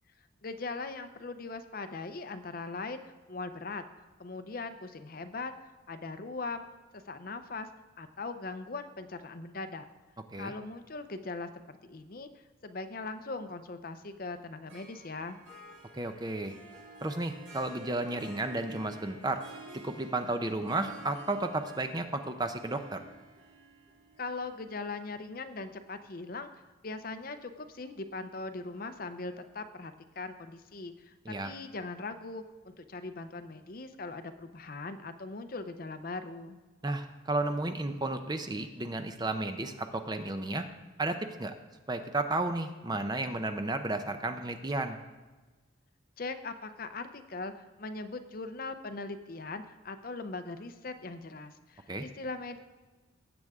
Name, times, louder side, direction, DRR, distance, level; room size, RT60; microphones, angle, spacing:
voice 1, 0.4-3.8 4.2-5.5 5.9-6.7 6.9-7.7 8.0-9.9 10.4-12.3 12.6-15.4 24.2-26.5 26.8-36.6 46.2-52.6, left 3 dB, 45° left, 9 dB, 0.6 m, -40 dB
Harp, 14.7-26.1, right 2 dB, 65° right, 2.8 m, -51 dB
voice 2, 15.9-16.5 17.0-19.4 19.8-23.0 31.3-31.5 36.8-40.7 41.0-41.5 41.9-45.0 51.9-52.0, right 2 dB, 20° right, 7 dB, 0.6 m, -33 dB
18.5 x 8.0 x 3.6 m, 1.2 s
head